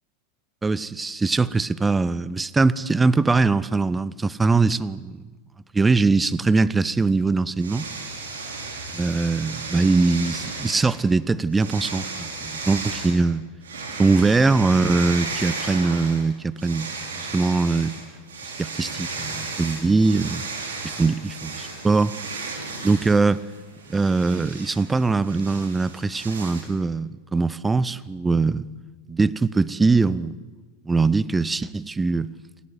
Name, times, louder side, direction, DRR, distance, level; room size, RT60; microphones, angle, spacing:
voice 1, 0.6-5.2 5.7-7.9 8.9-13.4 14.0-16.9 17.2-17.9 18.6-20.4 20.8-22.5 22.8-23.4 23.9-28.7 29.1-30.4 30.9-32.3, right 3 dB, 10° right, 0.6 m, -22 dB
sound 1, 7.6-11.0 11.5-13.2 13.6-16.2 16.6-26.6, right 3 dB, 60° right, 5.0 m, -34 dB
29.0 x 12.5 x 9.4 m
figure-of-eight pair, 90°, 0 cm